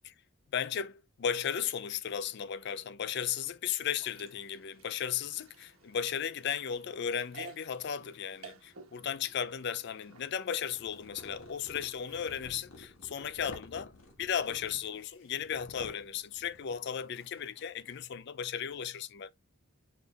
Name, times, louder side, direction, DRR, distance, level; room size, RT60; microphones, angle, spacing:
voice 1, 0.5-13.9 14.2-19.3, left 8 dB, 50° left, 0.4 m, -35 dB
sound 1, 3.8-12.6, right 5 dB, 75° right, 1.1 m, -55 dB
sound 2, 8.8-9.8 10.5-18.3, left 2 dB, 65° left, 1.5 m, -53 dB
5.1 x 4.1 x 2.3 m
head